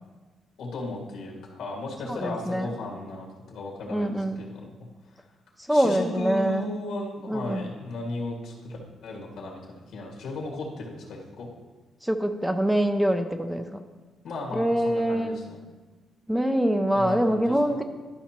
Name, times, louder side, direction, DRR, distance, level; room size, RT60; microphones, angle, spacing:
voice 1, 0.6-4.6 5.7-8.8 9.0-11.5 14.2-15.7 16.9-17.8, left 2 dB, 75° left, -2 dB, 2.0 m, -35 dB
voice 2, 2.1-2.7 3.9-4.4 5.7-6.7 7.3-7.7 12.0-13.8 14.5-15.4 16.3-17.8, right 1 dB, 5° right, 7 dB, 0.4 m, -24 dB
12.0 x 5.6 x 2.9 m, 1.3 s
cardioid pair, 130°, 0 cm